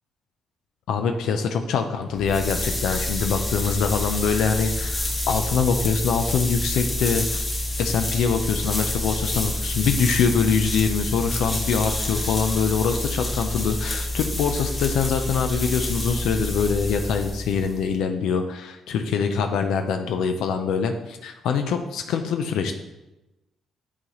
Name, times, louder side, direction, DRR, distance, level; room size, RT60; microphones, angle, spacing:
voice 1, 0.9-7.4 7.8-22.7, left 6 dB, 85° left, 6 dB, 0.4 m, -24 dB
sound 1, 2.1-17.8, left 1 dB, 25° left, 1.4 m, -28 dB
8.6 x 4.0 x 3.0 m, 0.99 s
cardioid pair, 90°, 0 cm